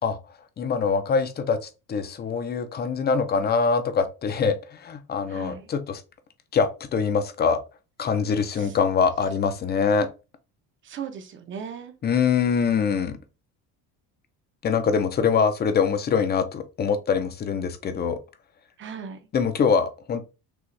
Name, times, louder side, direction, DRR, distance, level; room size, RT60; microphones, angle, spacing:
voice 1, 0.6-6.0 6.5-7.6 8.0-10.1 12.0-13.2 14.6-18.2 19.3-20.2, left 6 dB, 30° left, 0.6 m, -24 dB
voice 2, 5.3-5.7 8.4-8.8 10.8-11.9 18.8-19.2, right 7 dB, 35° right, 0.8 m, -38 dB
6.2 x 2.4 x 3.2 m
cardioid pair, 140°, 35 cm